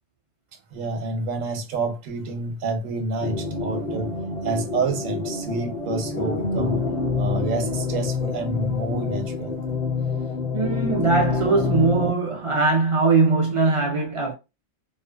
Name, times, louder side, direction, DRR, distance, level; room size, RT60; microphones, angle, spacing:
voice 1, 0.7-4.1 4.4-6.9 7.2-9.5, right 3 dB, 85° right, 1.1 m, -28 dB
sound 1, 3.2-12.1, left 4 dB, 40° left, 0.6 m, -27 dB
voice 2, 10.5-14.3, right 3 dB, 50° right, 0.4 m, -21 dB
2.4 x 2.2 x 2.2 m
omnidirectional pair, 1.3 m